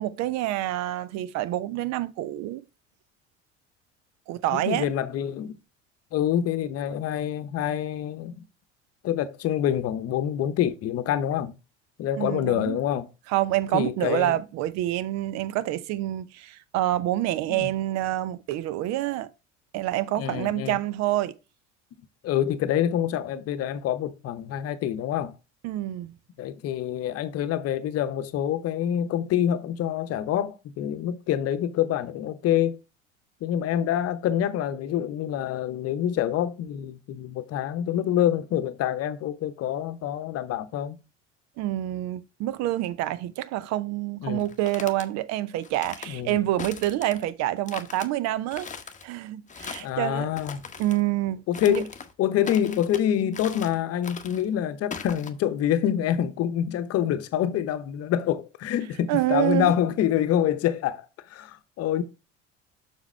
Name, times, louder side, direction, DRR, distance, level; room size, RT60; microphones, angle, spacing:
voice 1, 0.0-2.6 4.3-4.9 12.2-12.8 13.3-19.3 19.7-21.4 25.6-26.1 41.6-48.7 49.0-50.3 50.8-51.8 59.1-59.7, right 14 dB, 45° right, 0.7 m, -27 dB
voice 2, 4.5-5.5 6.1-8.4 9.0-11.6 12.0-13.1 13.7-14.4 17.6-17.7 20.2-20.8 22.2-25.4 26.4-32.8 33.4-41.0 44.2-44.5 46.1-46.4 49.8-50.6 51.5-51.9 52.2-61.0 61.3-62.0, left 10 dB, 40° left, 1.0 m, -26 dB
sound 1, 44.4-45.1 45.6-46.1 46.6-47.3 47.7-48.1 48.5-49.0 49.5-49.9 50.3-51.0 51.5-52.1 52.4-53.0 53.3-53.8 54.0-54.4 54.9-55.3, left 6 dB, 20° left, 1.0 m, -40 dB
7.2 x 6.2 x 3.3 m
figure-of-eight pair, 65°, 36 cm